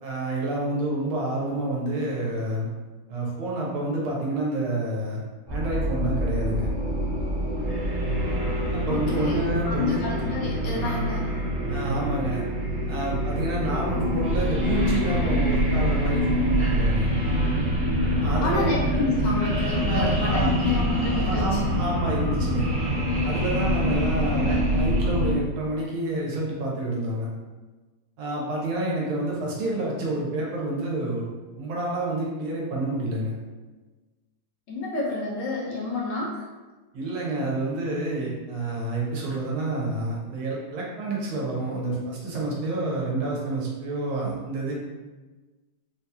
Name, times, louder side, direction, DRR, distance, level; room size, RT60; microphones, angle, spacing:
voice 1, 0.0-2.7 3.1-5.2 5.5-6.7 8.7-10.0 11.7-12.4 12.9-17.1 18.2-18.7 19.9-20.5 21.1-22.7 23.2-27.3 28.2-31.2 31.6-33.3 36.9-44.7, right 2 dB, 80° right, -3 dB, 1.7 m, -28 dB
sound 1, 5.5-25.3, equal, 30° right, 1.2 m, -25 dB
voice 2, 8.9-11.3 18.4-21.6 23.8-23.9 34.7-36.4, left 3 dB, 70° left, -3 dB, 1.2 m, -29 dB
4.0 x 2.3 x 2.8 m, 1.3 s
omnidirectional pair, 2.2 m